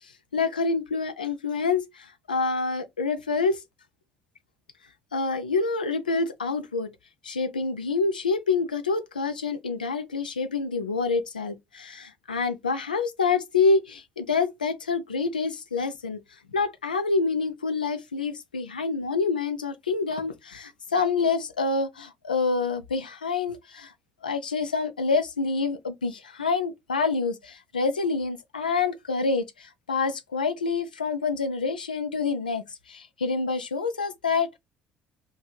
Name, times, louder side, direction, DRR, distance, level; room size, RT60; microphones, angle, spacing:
voice 1, 0.3-3.6 5.1-6.9 7.2-16.2 16.5-23.9 24.2-34.6, left 4 dB, 85° left, 0.3 m, -27 dB
2.6 x 2.6 x 2.3 m
figure-of-eight pair, 50°, 5 cm